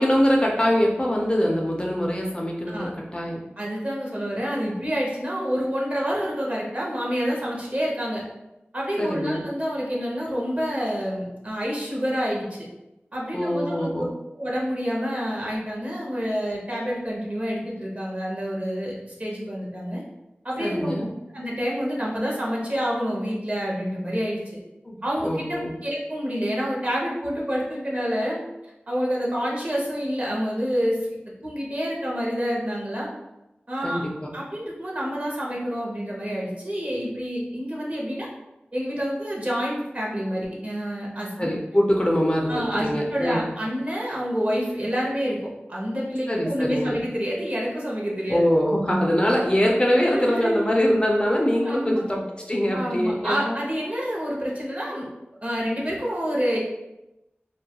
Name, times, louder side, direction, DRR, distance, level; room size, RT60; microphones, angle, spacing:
voice 1, 0.0-3.4 9.0-9.4 13.3-14.1 20.6-21.1 24.9-25.7 33.8-34.3 41.4-43.4 46.3-47.0 48.3-52.2 52.5-53.6, equal, 25° left, -1 dB, 0.4 m, -23 dB
voice 2, 3.6-8.2 8.7-12.7 13.1-13.9 14.3-20.0 20.4-21.0 21.3-24.4 25.0-28.4 28.9-31.1 31.4-33.2 33.7-34.0 34.3-38.3 38.7-41.5 42.5-48.4 50.1-50.7 51.6-52.0 52.7-55.1 55.4-56.6, equal, 40° right, -4 dB, 0.7 m, -28 dB
2.2 x 2.1 x 2.8 m, 0.95 s
wide cardioid pair, 45°, 4 cm